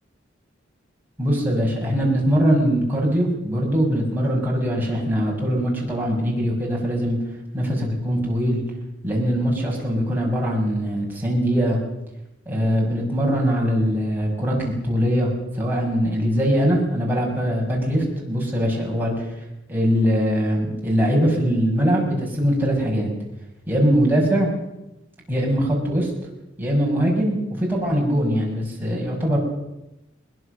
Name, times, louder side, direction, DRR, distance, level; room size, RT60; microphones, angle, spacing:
voice 1, 1.2-7.2 7.5-8.6 9.0-11.8 12.5-19.3 19.7-23.1 23.7-24.5 25.3-26.1 26.6-29.4, equal, 10° right, -3 dB, 6.1 m, -22 dB
21.5 x 20.5 x 6.7 m, 0.91 s
head